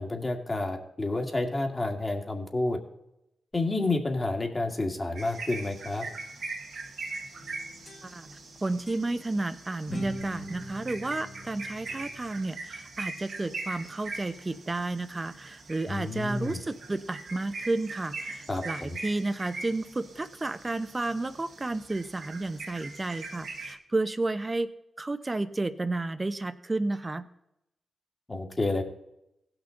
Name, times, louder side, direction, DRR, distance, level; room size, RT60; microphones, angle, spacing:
voice 1, 0.0-2.8 3.5-6.0 15.9-16.6 18.5-19.0 28.3-28.8, left 2 dB, 35° left, 2 dB, 2.1 m, -30 dB
sound 1, 5.2-23.7, right 3 dB, 70° right, 1.8 m, -42 dB
sound 2, 7.3-8.5 8.9-9.0 9.9-12.4, equal, 50° left, 2.6 m, -42 dB
voice 2, 8.0-24.7 25.0-27.3, right 2 dB, 35° right, 11 dB, 0.8 m, -32 dB
17.0 x 6.0 x 3.9 m, 0.83 s
supercardioid pair, 45°, 0 cm